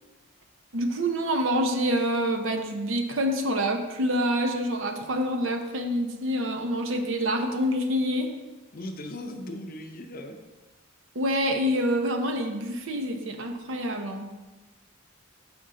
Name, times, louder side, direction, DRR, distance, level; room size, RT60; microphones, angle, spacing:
voice 1, 0.7-8.3 11.1-14.3, equal, 65° right, 5 dB, 0.7 m, -27 dB
voice 2, 8.7-10.4, left 1 dB, 45° left, 5 dB, 0.6 m, -38 dB
6.0 x 5.3 x 3.8 m, 1.1 s
head